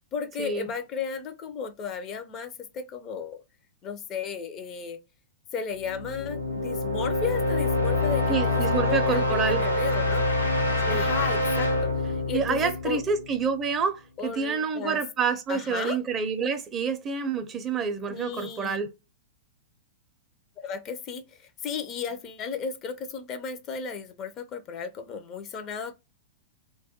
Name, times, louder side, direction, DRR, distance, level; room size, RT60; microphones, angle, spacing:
voice 1, 0.1-3.4 3.8-5.0 5.5-10.3 10.9-11.7 12.0-13.0 14.2-15.0 15.5-16.0 18.1-18.8 20.6-26.0, left 6 dB, 30° left, 0.4 m, -34 dB
sound 1, 5.8-13.6, left 2 dB, 85° left, 0.7 m, -26 dB
voice 2, 8.3-9.6 10.8-11.0 12.3-18.9, right 5 dB, 25° right, 0.5 m, -28 dB
2.2 x 2.1 x 2.7 m
figure-of-eight pair, 105°, 0 cm